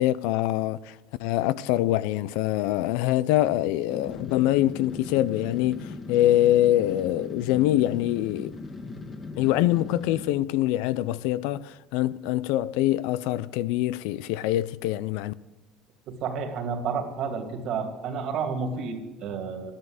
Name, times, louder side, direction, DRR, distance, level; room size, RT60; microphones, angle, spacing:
voice 1, 0.0-8.6 9.4-15.3, left 14 dB, 85° left, 0.5 m, -24 dB
sound 1, 3.9-10.3, left 3 dB, 25° left, 1.7 m, -39 dB
voice 2, 16.1-19.7, right 5 dB, 55° right, 2.6 m, -31 dB
13.0 x 11.0 x 7.9 m
cardioid pair, 125°, 0 cm